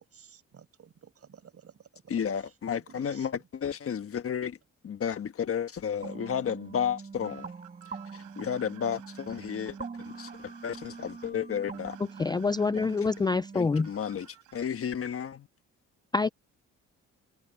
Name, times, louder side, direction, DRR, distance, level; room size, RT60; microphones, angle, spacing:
voice 1, 0.0-3.4, right 7 dB, 50° right, 7.0 m, -54 dB
voice 2, 2.1-4.6 4.8-7.5 7.9-12.0 12.8-12.9 13.5-14.3 14.5-15.5, left 8 dB, 50° left, 1.3 m, -32 dB
sound 1, 6.0-13.6, right 5 dB, 25° right, 2.2 m, -44 dB
sound 2, 7.2-14.7, right 15 dB, 85° right, 6.2 m, -54 dB
voice 3, 12.2-13.9 16.1-16.3, left 4 dB, 15° left, 0.4 m, -26 dB
cardioid pair, 90°, 30 cm